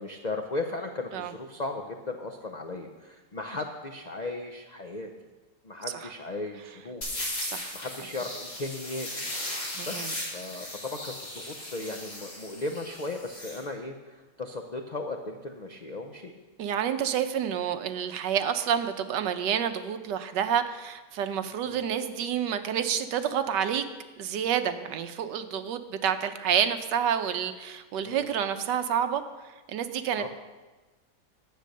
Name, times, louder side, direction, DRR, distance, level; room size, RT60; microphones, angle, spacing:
voice 1, 0.0-5.1 5.6-7.1 7.7-9.3 9.8-10.1 10.3-16.3 21.7-21.8 28.0-28.3 30.2-30.3, left 2 dB, 85° left, 3 dB, 0.3 m, -36 dB
sound 1, 7.0-13.6, left 1 dB, 55° left, 3.9 m, -37 dB
voice 2, 7.4-7.8 9.7-10.1 16.6-23.8 24.2-30.3, right 8 dB, 80° right, 9 dB, 1.4 m, -29 dB
10.0 x 8.4 x 6.5 m, 1.2 s
omnidirectional pair, 1.9 m